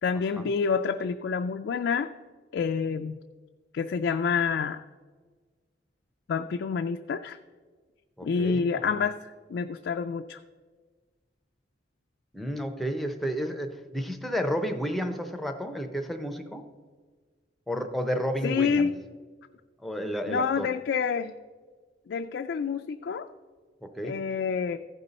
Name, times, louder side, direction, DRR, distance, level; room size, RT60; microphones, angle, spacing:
voice 1, 0.0-2.1 2.5-3.2 3.7-4.8 6.3-7.4 8.2-10.4 18.4-18.9 20.3-21.3 22.1-23.3 24.0-24.8, left 5 dB, 65° left, 6 dB, 0.3 m, -28 dB
voice 2, 8.2-9.0 12.3-16.6 17.7-18.9 19.8-20.7 23.8-24.2, equal, ahead, 5 dB, 0.6 m, -31 dB
14.5 x 5.4 x 4.0 m, 1.5 s
head